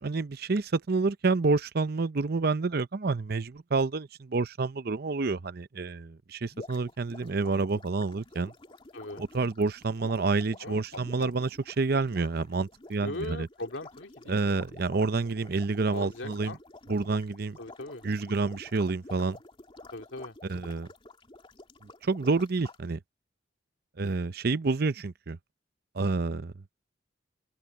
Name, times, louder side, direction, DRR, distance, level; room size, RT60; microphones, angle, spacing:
voice 1, 0.0-8.5 9.2-13.5 14.3-16.6 16.9-17.6 18.0-19.4 20.5-20.9 22.0-23.0 24.0-25.4 25.9-26.5, right 3 dB, 55° right, 0.7 m, -28 dB
sound 1, 6.5-22.8, left 2 dB, 30° left, 2.5 m, -50 dB
voice 2, 10.6-11.3 13.0-14.6 15.9-16.6 17.6-18.1 19.9-20.4, left 2 dB, 85° left, 2.4 m, -39 dB
open air
head